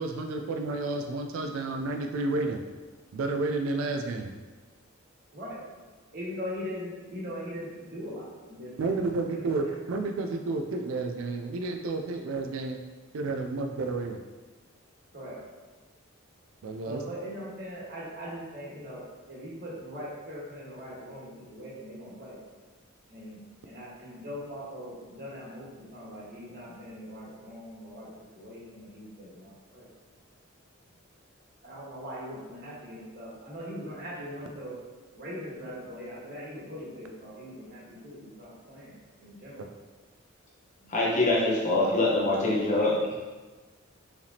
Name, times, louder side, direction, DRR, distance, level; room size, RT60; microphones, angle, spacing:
voice 1, 0.0-2.6 3.1-4.3 8.8-12.8 13.1-14.2 16.6-17.0, right 3 dB, 80° right, 5 dB, 0.4 m, -31 dB
voice 2, 5.3-5.6 6.1-9.0 9.3-9.7 15.1-15.4 16.8-22.4 23.1-29.8 31.6-34.8 35.1-39.7, equal, 50° right, -6 dB, 1.5 m, -41 dB
voice 3, 40.9-43.0, left 2 dB, 35° left, -4 dB, 1.0 m, -24 dB
4.8 x 3.3 x 2.8 m, 1.3 s
head